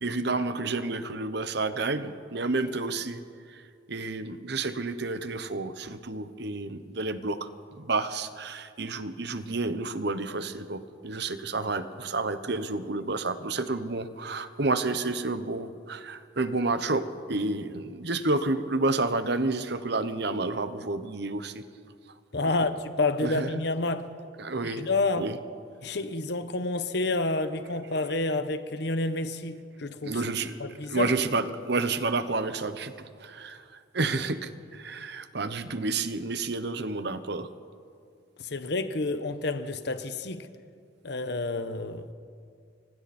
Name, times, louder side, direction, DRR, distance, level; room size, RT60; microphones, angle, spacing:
voice 1, 0.0-3.2 3.9-7.5 7.8-21.6 23.2-23.5 24.4-24.9 25.2-25.4 30.0-30.6 30.9-33.6 33.9-37.5, right 3 dB, 60° right, 1.1 m, -30 dB
voice 2, 22.3-24.1 24.6-25.3 25.8-30.2 30.6-31.1 35.0-35.1 38.4-40.5 41.0-42.1, left 2 dB, 60° left, 1.1 m, -29 dB
29.0 x 24.5 x 4.4 m
head